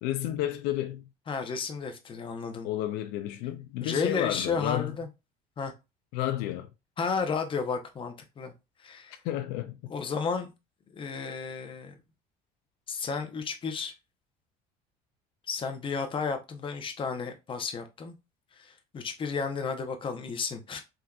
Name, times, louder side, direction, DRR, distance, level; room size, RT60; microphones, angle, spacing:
voice 1, 0.0-1.1 2.6-5.0 6.1-6.7 9.2-9.9, left 13 dB, 80° left, 0.4 m, -31 dB
voice 2, 1.3-2.7 3.8-5.1 5.6-5.7 7.0-8.5 8.8-9.2 9.9-10.5 10.9-11.9 12.9-13.9 15.5-18.1 18.6-20.8, left 5 dB, 30° left, 0.7 m, -32 dB
3.5 x 2.7 x 2.3 m
cardioid pair, 110°, 17 cm